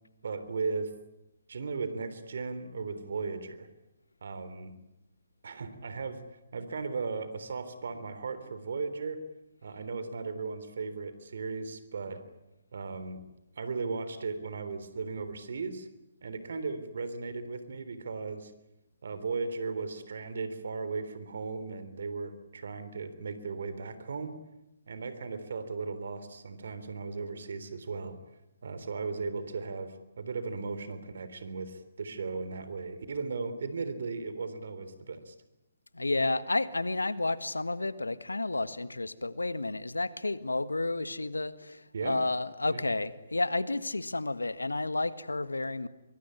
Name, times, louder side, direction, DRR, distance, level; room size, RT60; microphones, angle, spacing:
voice 1, 0.2-0.9 1.5-3.7 4.2-4.7 5.4-6.2 6.5-9.2 9.6-12.3 12.7-13.2 13.6-15.9 16.2-18.5 19.0-24.4 24.9-28.2 28.6-35.3 41.9-42.2 42.7-42.8, right 4 dB, 65° right, 12 dB, 3.6 m, -36 dB
voice 2, 35.9-45.9, left 2 dB, 90° left, 14 dB, 1.6 m, -31 dB
23.5 x 23.5 x 9.8 m, 0.94 s
figure-of-eight pair, 140°, 0 cm